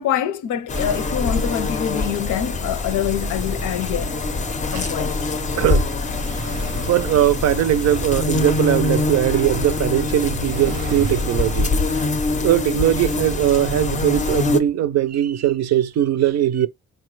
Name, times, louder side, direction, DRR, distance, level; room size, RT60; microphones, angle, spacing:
voice 1, 0.0-4.1 4.7-5.2, left 10 dB, 80° left, 0.6 m, -25 dB
sound 1, 0.7-14.6, left 3 dB, 25° left, 0.5 m, -24 dB
sound 2, 0.7-14.4, right 5 dB, 90° right, 0.8 m, -37 dB
voice 2, 5.6-5.9 6.7-12.1 12.4-16.7, right 12 dB, 60° right, 0.5 m, -20 dB
3.8 x 2.2 x 3.1 m
cardioid pair, 90°, 30 cm